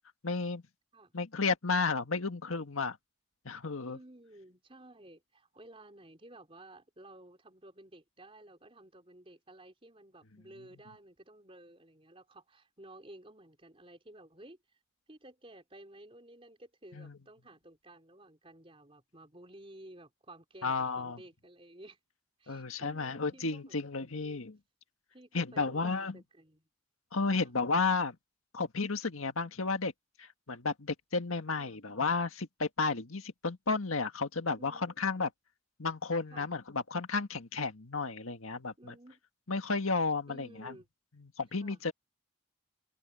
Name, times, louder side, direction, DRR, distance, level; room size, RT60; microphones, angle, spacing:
voice 1, 0.2-0.6 1.1-3.0 3.5-4.0 16.9-17.2 20.6-21.2 22.5-24.6 25.3-26.2 27.1-28.2 28.5-29.9 30.2-35.3 35.8-38.9 39.5-40.7 41.2-41.9, left 4 dB, 90° left, 1.8 m, -32 dB
voice 2, 3.9-14.8 15.1-22.0 22.4-23.8 24.1-24.5 25.1-26.7 27.3-27.5 31.6-31.8 34.6-34.9 36.3-36.5 38.8-39.2 40.3-40.9 41.6-41.8, right 1 dB, 25° right, 4.4 m, -54 dB
open air
head